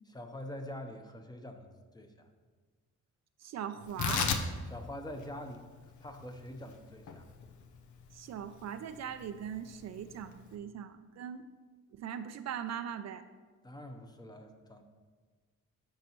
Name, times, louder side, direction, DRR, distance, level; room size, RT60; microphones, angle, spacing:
voice 1, 0.1-2.3 4.7-5.6 6.0-7.3 13.6-14.8, left 1 dB, 15° left, 5 dB, 0.9 m, -45 dB
voice 2, 3.4-4.3 8.1-11.4 11.9-13.3, right 9 dB, 60° right, 10 dB, 0.5 m, -40 dB
Tearing, 3.8-10.5, left 6 dB, 70° left, 0.8 m, -38 dB
12.5 x 5.5 x 3.1 m, 1.4 s
cardioid pair, 90°, 30 cm